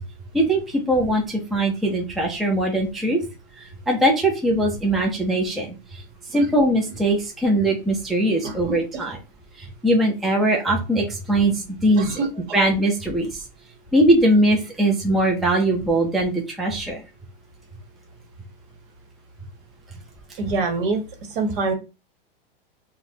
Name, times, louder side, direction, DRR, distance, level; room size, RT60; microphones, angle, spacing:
voice 1, 0.3-3.2 3.6-6.0 6.3-9.2 9.6-12.2 12.5-13.3 13.9-17.0, right 1 dB, ahead, 0 dB, 0.4 m, -21 dB
voice 2, 12.0-12.6 20.4-21.0 21.3-21.7, right 3 dB, 60° right, 4 dB, 1.3 m, -25 dB
4.0 x 2.2 x 2.6 m, 0.29 s
hypercardioid pair, 130°, 29 cm